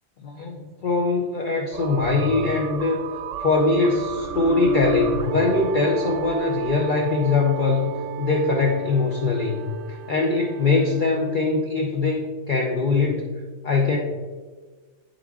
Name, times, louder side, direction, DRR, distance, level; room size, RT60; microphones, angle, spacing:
voice 1, 0.2-3.0 3.4-7.9 8.2-9.6 9.9-13.3 13.6-14.0, left 3 dB, 50° left, -1 dB, 0.8 m, -22 dB
sound 1, 1.7-11.4, right 7 dB, 85° right, 0.9 m, -33 dB
10.5 x 3.7 x 3.5 m, 1.4 s
omnidirectional pair, 1.2 m